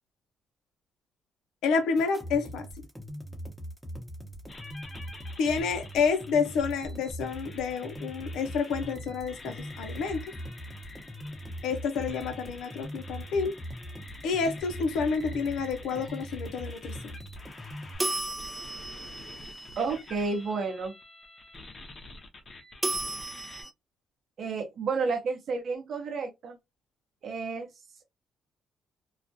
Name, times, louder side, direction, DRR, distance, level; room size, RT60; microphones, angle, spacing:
voice 1, 1.6-2.7 5.4-10.2 11.6-13.6 14.2-16.9, left 5 dB, 85° left, 0.6 m, -29 dB
sound 1, 2.0-18.0, equal, 5° left, 0.8 m, -41 dB
sound 2, 4.5-23.6, left 2 dB, 40° left, 0.7 m, -48 dB
sound 3, 18.0-20.2 22.8-23.7, right 2 dB, 15° right, 0.4 m, -34 dB
voice 2, 19.8-20.9 24.4-26.6 27.2-27.7, right 4 dB, 55° right, 0.7 m, -31 dB
2.3 x 2.1 x 2.6 m
cardioid pair, 90°, 0 cm